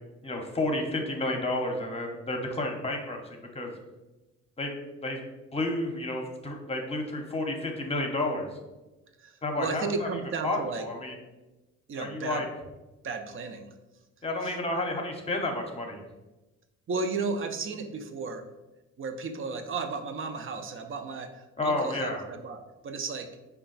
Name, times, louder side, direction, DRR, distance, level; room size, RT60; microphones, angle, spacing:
voice 1, 0.2-3.2 3.5-3.7 4.6-4.7 5.0-5.2 5.5-8.5 9.4-10.1 10.4-11.1 12.0-12.4 14.2-16.0 21.6-22.2, left 2 dB, 20° left, 2 dB, 0.8 m, -31 dB
voice 2, 9.2-10.9 11.9-12.5 13.0-13.7 14.4-14.6 16.9-18.4 19.0-23.3, right 4 dB, 45° right, 7 dB, 0.5 m, -34 dB
5.0 x 2.3 x 3.9 m, 1.1 s
cardioid pair, 90°, 30 cm